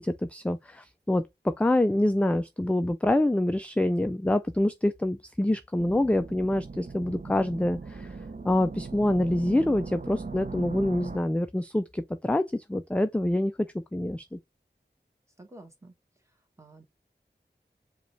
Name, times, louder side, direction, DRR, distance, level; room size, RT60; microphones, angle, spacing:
voice 1, 0.0-8.2 8.4-14.4, left 1 dB, 5° left, 0.3 m, -26 dB
sound 1, 5.8-11.2, right 4 dB, 45° right, 0.5 m, -39 dB
voice 2, 15.4-15.9 16.6-16.8, right 1 dB, 15° right, 1.2 m, -49 dB
5.0 x 2.3 x 3.1 m
wide cardioid pair, 45°, 19 cm